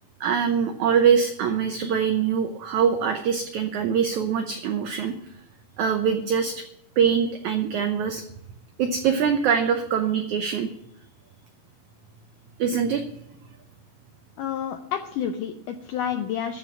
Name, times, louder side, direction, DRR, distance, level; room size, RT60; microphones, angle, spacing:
voice 1, 0.2-5.1 5.8-6.6 7.0-8.2 8.8-10.7 12.6-13.0, right 7 dB, 80° right, 6 dB, 1.7 m, -23 dB
voice 2, 14.4-16.6, left 8 dB, 80° left, 6 dB, 1.9 m, -29 dB
14.0 x 5.1 x 9.4 m, 0.80 s
omnidirectional pair, 4.5 m